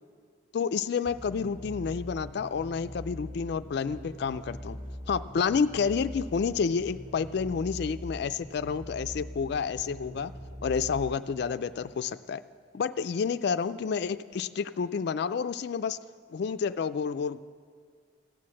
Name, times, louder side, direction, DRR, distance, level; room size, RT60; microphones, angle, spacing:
voice 1, 0.5-4.8 5.1-10.3 10.6-12.4 12.7-16.0 16.3-17.4, left 6 dB, 60° left, 12 dB, 0.3 m, -29 dB
sound 1, 1.0-11.8, equal, 10° right, 1.5 m, -42 dB
15.5 x 9.5 x 7.5 m, 2.1 s
head